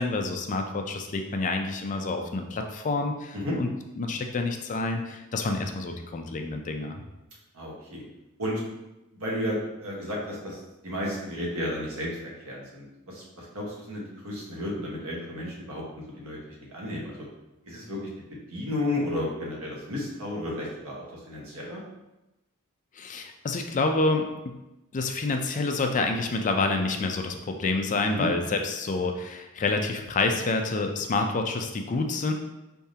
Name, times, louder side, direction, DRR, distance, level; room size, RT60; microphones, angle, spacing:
voice 1, 0.0-3.7 4.0-7.0 23.0-24.5 24.9-32.3, left 3 dB, 35° left, 4 dB, 0.4 m, -28 dB
voice 2, 7.5-8.0 8.4-8.6 9.1-15.8 16.1-16.4 16.7-17.2 17.6-18.0 18.5-21.8 28.2-28.3, left 1 dB, 75° right, -4 dB, 1.3 m, -33 dB
4.6 x 3.5 x 2.8 m, 0.97 s
head